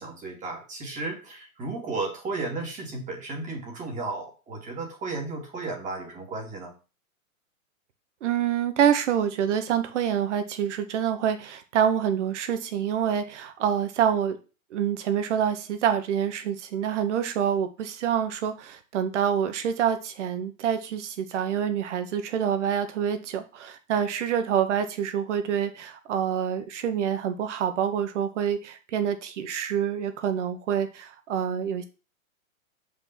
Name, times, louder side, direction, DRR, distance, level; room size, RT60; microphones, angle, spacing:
voice 1, 0.0-6.7, right 3 dB, 20° right, 1 dB, 2.6 m, -34 dB
voice 2, 8.2-14.4 14.7-31.8, right 8 dB, 55° right, 8 dB, 1.7 m, -26 dB
7.1 x 5.3 x 6.1 m, 0.32 s
hypercardioid pair, 140°, 42 cm